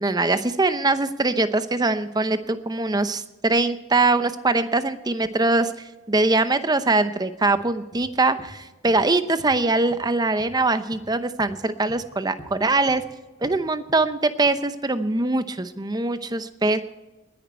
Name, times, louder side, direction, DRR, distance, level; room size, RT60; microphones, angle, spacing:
voice 1, 0.0-5.7 6.1-13.0 13.4-16.8, right 2 dB, 20° right, 11 dB, 0.8 m, -22 dB
sound 1, 7.5-7.6 7.9-8.1 8.4-8.5 8.9-9.0 9.4-9.6 9.9-10.1 10.4-10.5 10.9-11.0 11.4-11.5 11.9-12.0 12.4-12.5 12.9-13.0 13.4-13.6 13.9-14.1 14.5-14.6, equal, 25° left, 4.5 m, -45 dB
20.5 x 10.5 x 4.5 m, 1.1 s
head